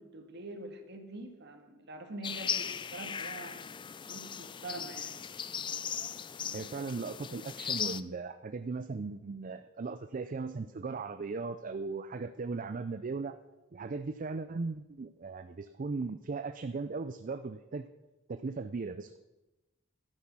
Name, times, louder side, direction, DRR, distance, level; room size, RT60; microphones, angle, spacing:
voice 1, 0.0-3.6 4.1-5.2, right 2 dB, 60° right, 5 dB, 1.9 m, -45 dB
sound 1, 2.2-8.0, left 7 dB, 25° left, 0.4 m, -38 dB
voice 2, 6.5-13.3 13.7-17.8 18.3-19.2, right 4 dB, 40° right, 10 dB, 0.5 m, -37 dB
12.0 x 9.9 x 6.1 m, 1.1 s
head